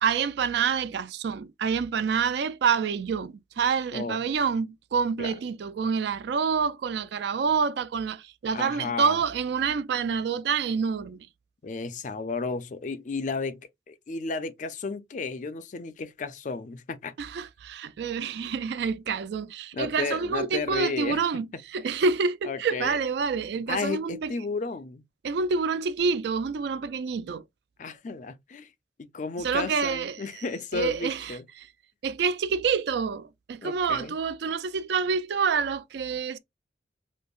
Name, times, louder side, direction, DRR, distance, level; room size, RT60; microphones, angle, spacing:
voice 1, 0.0-11.3 17.2-24.3 25.2-27.4 29.4-30.4 30.7-31.7 32.0-36.4, right 5 dB, 60° right, 0.3 m, -27 dB
voice 2, 8.5-9.2 11.6-17.1 19.7-21.2 22.4-23.0 23.7-25.0 27.8-28.7 29.0-31.4 33.6-34.1, left 4 dB, 40° left, 0.4 m, -33 dB
5.1 x 2.0 x 2.3 m
head